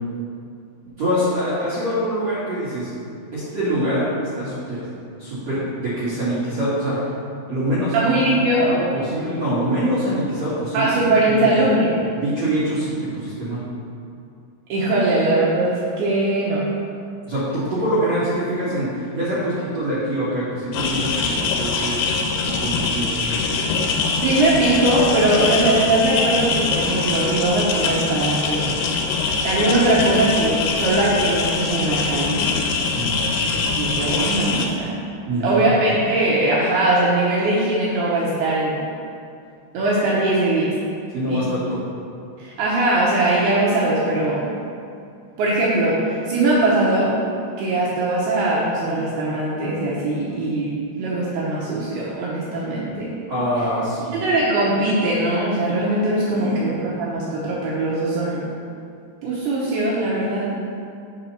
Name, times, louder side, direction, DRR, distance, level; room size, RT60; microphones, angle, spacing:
voice 1, 1.0-2.9 3.3-4.8 5.2-7.1 7.5-8.1 8.6-10.9 11.3-11.5 12.1-13.7 17.3-22.0 22.4-23.4 32.9-33.2 35.3-35.7 41.1-41.8 53.3-54.2 56.3-56.7, right 1 dB, 55° right, -11 dB, 2.0 m, -24 dB
voice 2, 7.9-8.7 10.7-12.0 14.7-16.6 24.2-28.8 29.4-32.5 33.8-34.9 35.4-38.8 39.7-40.7 41.3-41.5 42.4-44.5 45.4-47.1 47.6-53.1 54.1-58.4 59.2-60.5, right 2 dB, 75° right, -6 dB, 2.3 m, -20 dB
sound 1, 20.7-34.7, left 4 dB, 85° left, 3.2 m, -23 dB
8.0 x 4.3 x 5.5 m, 2.4 s
omnidirectional pair, 5.6 m